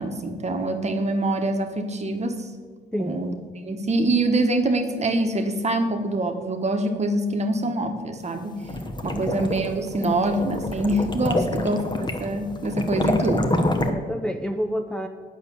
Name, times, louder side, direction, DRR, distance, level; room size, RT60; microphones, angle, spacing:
voice 1, 0.0-2.5 3.0-3.3 3.6-8.6 9.0-13.5, right 2 dB, 35° right, 6 dB, 1.3 m, -25 dB
voice 2, 2.9-3.3 9.1-9.4 11.3-11.7 13.9-15.1, equal, 5° left, 4 dB, 0.6 m, -29 dB
sound 1, 8.4-13.9, left 1 dB, 20° left, 1.1 m, -27 dB
8.8 x 6.6 x 7.0 m, 1.5 s
cardioid pair, 90°, 20 cm